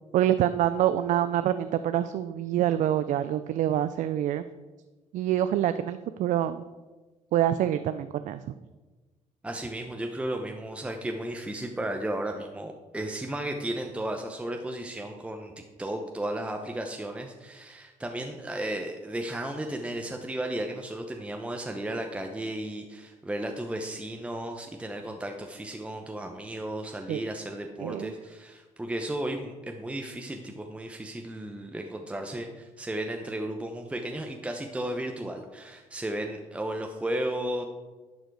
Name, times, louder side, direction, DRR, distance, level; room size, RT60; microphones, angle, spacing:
voice 1, 0.1-4.4 5.1-6.6 7.3-8.4 27.1-27.2 27.8-28.1, right 11 dB, 75° right, 12 dB, 0.4 m, -26 dB
voice 2, 9.4-15.5 15.8-37.6, right 1 dB, 10° right, 3 dB, 0.8 m, -34 dB
11.5 x 6.5 x 4.7 m, 1.2 s
cardioid pair, 110°, 13 cm